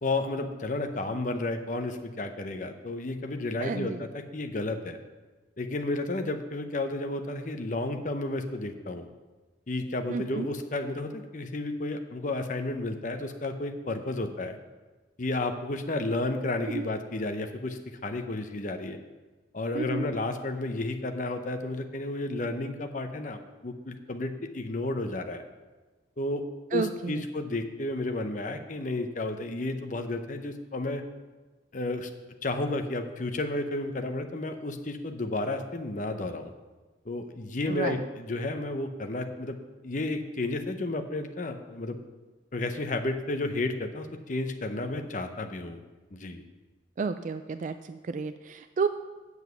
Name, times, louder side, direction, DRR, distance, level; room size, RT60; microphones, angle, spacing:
voice 1, 0.0-5.0 5.6-9.1 9.7-14.6 15.2-19.0 19.5-25.4 26.2-26.4 26.7-31.0 31.7-32.1 32.4-36.5 37.0-39.6 39.8-42.0 42.5-45.8 46.1-46.4, left 2 dB, 45° left, 6 dB, 0.8 m, -32 dB
voice 2, 3.6-4.0 10.1-10.5 16.7-16.9 19.7-20.1 26.7-27.2 37.7-38.0 47.0-48.9, right 5 dB, 45° right, 10 dB, 0.3 m, -31 dB
8.1 x 7.2 x 6.8 m, 1.2 s
head